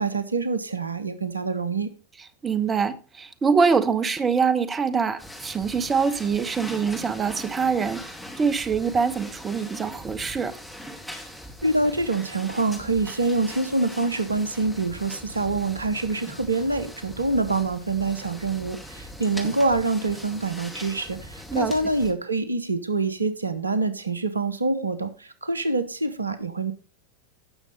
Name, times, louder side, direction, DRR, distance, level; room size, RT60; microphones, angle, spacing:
voice 1, 0.0-1.9 11.6-26.7, right 3 dB, 80° right, 0.9 m, -26 dB
voice 2, 2.4-8.0 8.4-10.5 21.5-21.7 24.8-24.9, right 5 dB, 20° right, 1.0 m, -24 dB
sound 1, 5.2-22.1, equal, ahead, 2.3 m, -41 dB
16.5 x 6.5 x 3.2 m
figure-of-eight pair, 90°, 0 cm